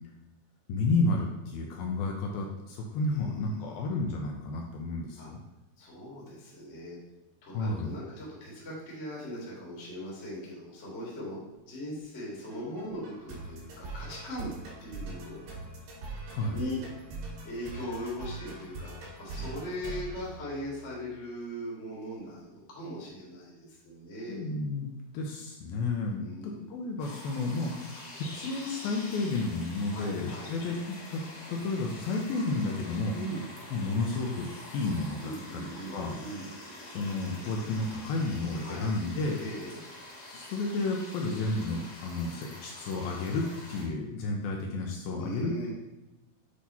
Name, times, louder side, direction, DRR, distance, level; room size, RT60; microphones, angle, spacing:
voice 1, 0.7-5.4 7.5-8.0 16.3-16.6 24.3-24.9 25.1-31.2 31.5-33.1 33.7-34.5 34.7-36.2 36.9-39.4 40.3-45.7, left 3 dB, 80° left, 0 dB, 2.3 m, -31 dB
voice 2, 3.1-3.8 5.2-5.3 5.8-7.0 7.4-14.5 14.8-15.4 16.5-16.8 17.4-24.5 26.1-26.6 29.9-30.5 33.1-33.5 35.2-36.5 38.6-38.9 39.4-39.8 45.1-45.7, equal, 35° left, -5 dB, 1.1 m, -40 dB
sound 1, 12.5-21.1, right 3 dB, 90° right, 3.7 m, -42 dB
sound 2, 27.0-43.8, left 1 dB, 55° left, 1.8 m, -46 dB
8.3 x 2.9 x 4.2 m, 1.0 s
omnidirectional pair, 4.6 m